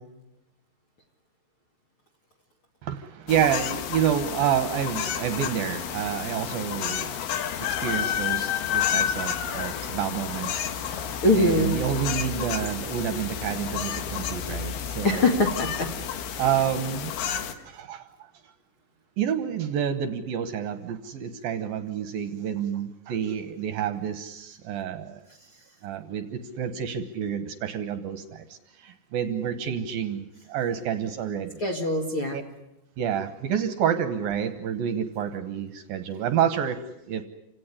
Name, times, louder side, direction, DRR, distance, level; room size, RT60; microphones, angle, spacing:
voice 1, 2.8-15.3 16.4-17.1 17.7-18.3 19.2-25.2 25.8-31.6 32.3-32.4 33.0-36.8 37.1-37.2, right 9 dB, 70° right, 10 dB, 2.5 m, -29 dB
sound 1, 3.3-17.5, left 9 dB, 65° left, 3.2 m, -30 dB
voice 2, 11.2-11.7 15.0-15.9 31.6-32.4, left 2 dB, 40° left, 3 dB, 2.0 m, -22 dB
28.0 x 17.5 x 9.9 m, 0.89 s
omnidirectional pair, 5.1 m